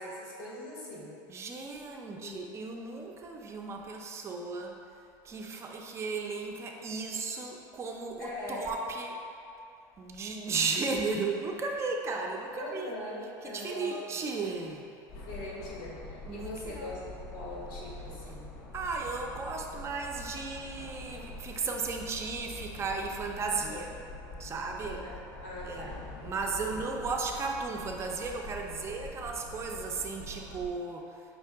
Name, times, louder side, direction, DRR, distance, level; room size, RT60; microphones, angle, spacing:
voice 1, 0.0-1.1 2.1-2.5 8.2-8.6 12.5-14.0 15.3-18.4 23.5-23.9 24.8-25.2 25.4-26.0 26.7-26.8, left 2 dB, 85° left, -5 dB, 1.4 m, -41 dB
voice 2, 1.3-4.8 5.2-9.2 10.0-12.9 13.4-14.8 16.3-16.9 18.7-23.9 24.4-25.0 25.7-25.9 26.2-31.1, right 4 dB, 25° right, 1 dB, 0.5 m, -35 dB
sound 1, 15.1-30.7, left 2 dB, 65° left, 0.6 m, -45 dB
5.3 x 2.8 x 3.4 m, 2.6 s
supercardioid pair, 120°, 10 cm